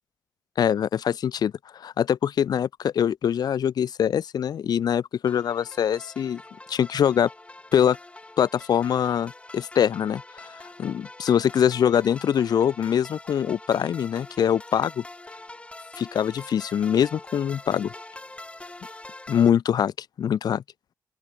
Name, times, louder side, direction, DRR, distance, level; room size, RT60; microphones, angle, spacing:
voice 1, 0.6-6.4 6.7-7.3 7.7-8.0 8.4-10.5 10.8-15.0 16.0-17.9 19.3-20.6, left 9 dB, 80° left, 3.7 m, -23 dB
sound 1, 5.3-19.5, left 2 dB, 15° left, 7.4 m, -44 dB
open air
cardioid pair, 90°, 7 cm